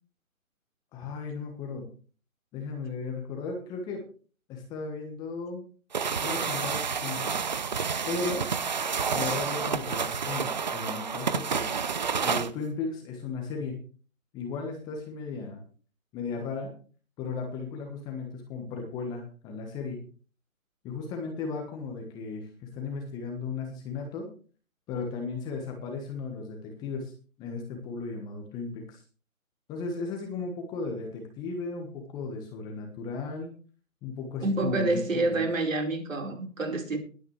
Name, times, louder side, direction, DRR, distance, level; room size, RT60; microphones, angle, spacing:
voice 1, 0.9-1.8 2.5-4.0 4.5-5.6 6.2-7.7 8.1-8.4 9.1-11.7 12.2-13.8 14.3-15.6 16.1-16.7 17.2-20.0 20.8-24.2 24.9-27.1 27.4-29.0 29.7-33.5 34.0-35.4, left 4 dB, 10° left, 1.3 m, -35 dB
sound 1, 5.9-12.5, right 6 dB, 35° right, 0.6 m, -29 dB
voice 2, 34.4-37.0, right 2 dB, 65° right, 4.6 m, -28 dB
21.0 x 9.3 x 3.2 m
figure-of-eight pair, 155°, 42 cm